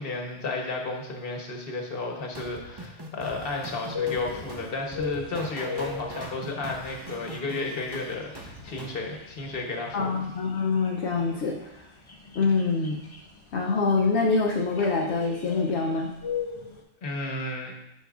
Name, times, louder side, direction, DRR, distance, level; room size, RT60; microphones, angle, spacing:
voice 1, 0.0-10.1 17.0-17.7, left 2 dB, 50° left, 1 dB, 1.2 m, -33 dB
sound 1, 2.3-9.0, equal, 25° right, 0.7 m, -41 dB
sound 2, 3.9-16.8, left 6 dB, 30° left, 0.6 m, -39 dB
voice 2, 9.9-11.8 12.3-13.0 13.5-16.1, left 4 dB, 70° left, -1 dB, 0.9 m, -25 dB
9.3 x 6.2 x 2.4 m, 0.87 s
omnidirectional pair, 1.3 m